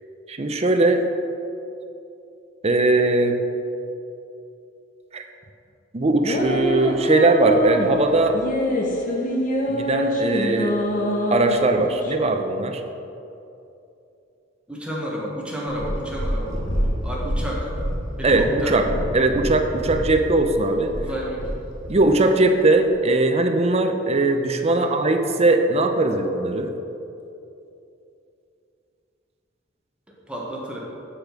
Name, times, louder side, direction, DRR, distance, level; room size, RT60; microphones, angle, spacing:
voice 1, 0.3-1.0 2.6-3.4 5.1-5.2 5.9-8.4 9.7-10.8 11.3-12.8 18.2-18.9 19.1-20.9 21.9-26.7, right 2 dB, 35° right, 6 dB, 0.6 m, -20 dB
sound 1, 6.2-12.1, equal, 45° left, 0.9 m, -24 dB
voice 2, 14.7-16.6 17.0-17.7 18.2-18.8 21.0-21.6 24.7-24.9 30.1-30.8, equal, 5° right, -4 dB, 1.3 m, -31 dB
Purr, 15.7-22.0 22.7-22.8, equal, 80° left, 1.7 m, -28 dB
8.6 x 5.1 x 5.9 m, 2.8 s
head